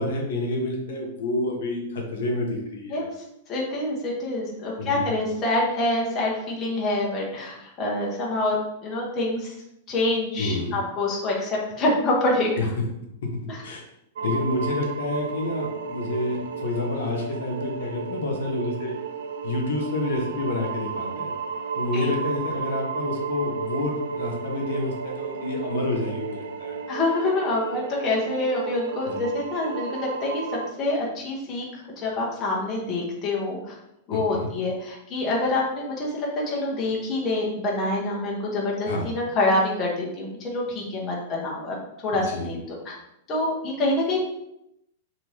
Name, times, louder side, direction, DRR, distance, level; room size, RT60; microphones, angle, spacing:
voice 1, 0.0-3.1 4.8-5.1 10.4-10.8 12.6-12.7 13.2-13.3 13.6-13.8 14.2-19.0 19.4-21.3 21.7-26.8 29.0-29.2 34.1-34.5 38.8-39.1 42.1-42.5, left 2 dB, 75° left, 0 dB, 0.7 m, -28 dB
voice 2, 3.5-9.5 9.9-12.5 13.5-13.6 21.9-22.1 26.9-30.4 30.8-31.7 32.0-33.8 34.1-42.9 43.3-44.2, left 2 dB, 20° left, -3 dB, 0.6 m, -26 dB
sound 1, 14.2-30.7, right 6 dB, 80° right, 0.3 m, -33 dB
2.7 x 2.4 x 3.1 m, 0.81 s
supercardioid pair, 165°, 0 cm